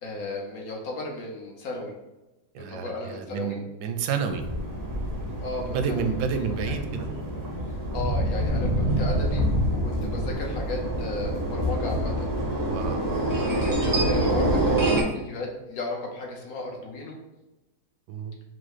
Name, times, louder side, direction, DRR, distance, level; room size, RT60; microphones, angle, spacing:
voice 1, 0.0-1.9 2.6-3.6 5.4-6.1 6.6-6.7 7.9-12.3 13.3-17.2, left 2 dB, 65° left, 0 dB, 1.3 m, -35 dB
voice 2, 2.5-4.4 5.7-7.1 12.7-13.0 18.1-18.4, right 6 dB, 85° right, 7 dB, 1.2 m, -30 dB
sound 1, 4.3-15.0, right 1 dB, 35° right, 0.3 m, -26 dB
4.7 x 2.1 x 4.7 m, 1.0 s
omnidirectional pair, 1.7 m